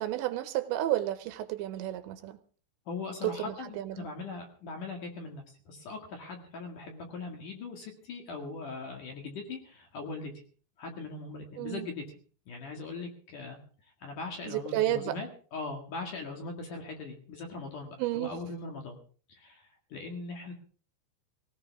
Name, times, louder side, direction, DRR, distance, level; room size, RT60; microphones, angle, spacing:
voice 1, 0.0-2.4 3.2-4.1 11.6-11.9 14.5-15.2 18.0-18.4, right 14 dB, 80° right, 10 dB, 2.9 m, -31 dB
voice 2, 2.9-10.3 10.8-12.2 12.5-13.6 14.0-19.0 19.3-19.6 19.9-20.5, left 3 dB, 50° left, 2 dB, 3.0 m, -40 dB
18.5 x 17.5 x 3.5 m, 0.41 s
omnidirectional pair, 5.5 m